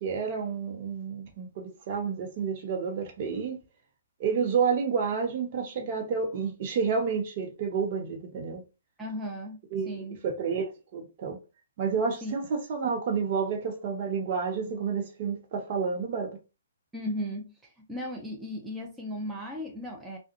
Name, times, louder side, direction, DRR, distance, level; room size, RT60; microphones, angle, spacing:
voice 1, 0.0-3.6 4.2-8.6 9.7-10.7 10.9-11.4 11.8-16.4, right 6 dB, 40° right, 0.8 m, -30 dB
voice 2, 9.0-9.6 9.9-10.2 12.2-12.3 16.9-17.5 17.9-20.2, equal, 10° right, 0.6 m, -35 dB
3.5 x 2.2 x 2.8 m
figure-of-eight pair, 130°, 0 cm